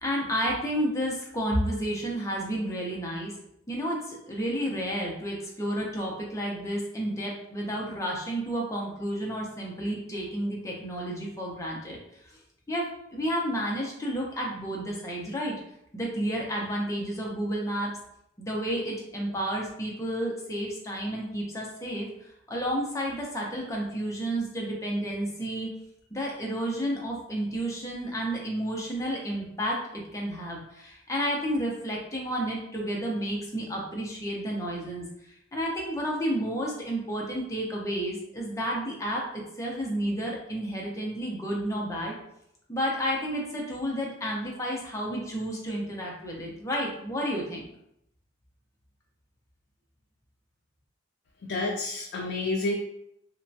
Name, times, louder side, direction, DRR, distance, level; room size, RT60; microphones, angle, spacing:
voice 1, 0.0-3.3 3.7-12.0 12.2-12.4 12.7-15.5 15.9-17.9 18.4-25.7 26.1-35.0 35.5-42.1 42.7-47.7, equal, 15° left, -3 dB, 0.6 m, -31 dB
voice 2, 51.4-52.7, left 2 dB, 60° left, -1 dB, 0.3 m, -29 dB
3.0 x 2.2 x 2.6 m, 0.77 s
head